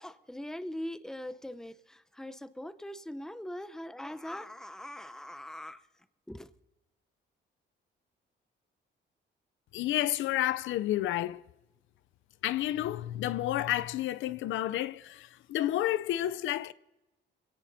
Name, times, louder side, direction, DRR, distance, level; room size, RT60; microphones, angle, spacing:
voice 1, 0.0-5.8 6.3-6.5, left 1 dB, 5° left, 0.7 m, -41 dB
voice 2, 9.7-11.4 12.4-16.7, left 13 dB, 80° left, 0.5 m, -30 dB
22.5 x 17.5 x 2.7 m
cardioid pair, 90°, 20 cm